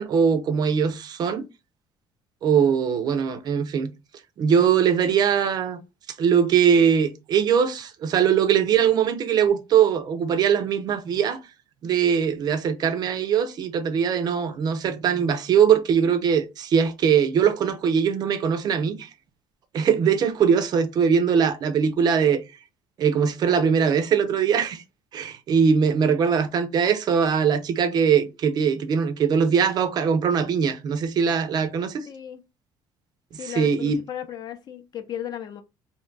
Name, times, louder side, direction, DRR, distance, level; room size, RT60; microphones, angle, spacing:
voice 1, 0.0-1.5 2.4-3.9 4.4-5.8 6.2-11.4 11.8-19.1 19.7-22.4 23.0-24.8 25.1-32.0 33.4-34.0, right 7 dB, 45° right, 0.4 m, -21 dB
voice 2, 32.0-32.4 33.3-35.6, left 10 dB, 45° left, 0.5 m, -35 dB
2.6 x 2.2 x 3.8 m
cardioid pair, 140°, 10 cm